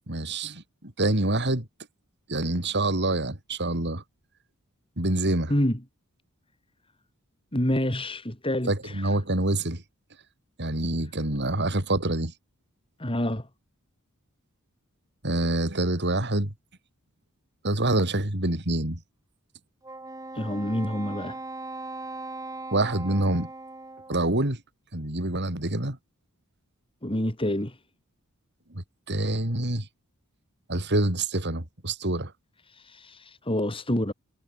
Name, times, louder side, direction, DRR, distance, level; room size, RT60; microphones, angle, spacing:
voice 1, 0.1-0.6 1.0-1.6 2.3-4.0 5.0-5.5 8.7-9.8 10.6-12.3 15.2-16.5 17.6-19.0 22.7-23.5 24.1-24.6 24.9-26.0 29.1-29.9 30.7-32.3, right 1 dB, 50° right, 4.5 m, -26 dB
voice 2, 7.5-8.9 13.0-13.5 20.3-21.3 27.0-27.7 32.9-34.1, left 1 dB, 25° left, 4.5 m, -27 dB
Wind instrument woodwind instrument, 19.8-24.4, right 2 dB, 15° right, 3.4 m, -39 dB
head